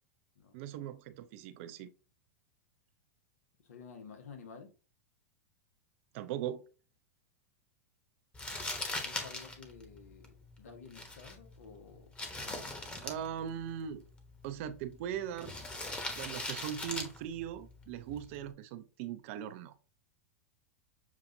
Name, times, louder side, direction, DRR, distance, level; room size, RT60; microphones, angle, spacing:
voice 1, 0.5-1.9 6.1-6.6 13.0-14.0 14.4-15.5 16.1-19.7, right 10 dB, 60° right, 0.6 m, -40 dB
voice 2, 3.6-4.7 9.0-12.1 12.4-12.7, left 5 dB, 85° left, 1.2 m, -52 dB
Crumpling crinkling, 8.3-18.5, left 2 dB, 15° left, 1.1 m, -42 dB
7.1 x 2.4 x 2.7 m
hypercardioid pair, 110°, 8 cm